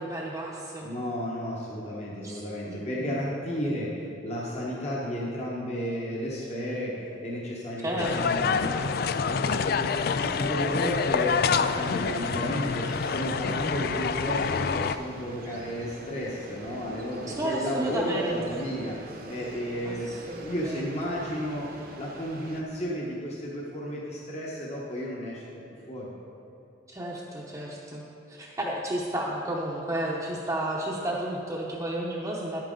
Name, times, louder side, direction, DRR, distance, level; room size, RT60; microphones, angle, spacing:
voice 1, 0.0-0.9 2.2-3.2 7.8-8.6 17.4-18.6 19.8-21.0 26.9-32.6, right 1 dB, 15° right, -6 dB, 0.8 m, -32 dB
voice 2, 0.8-21.7 22.0-25.6 25.9-26.1, equal, 35° left, -4 dB, 1.1 m, -33 dB
sound 1, 8.0-15.0, left 5 dB, 55° left, 0.3 m, -27 dB
sound 2, 11.5-22.6, right 1 dB, 50° right, 1.0 m, -45 dB
10.5 x 9.0 x 3.8 m, 3.0 s
head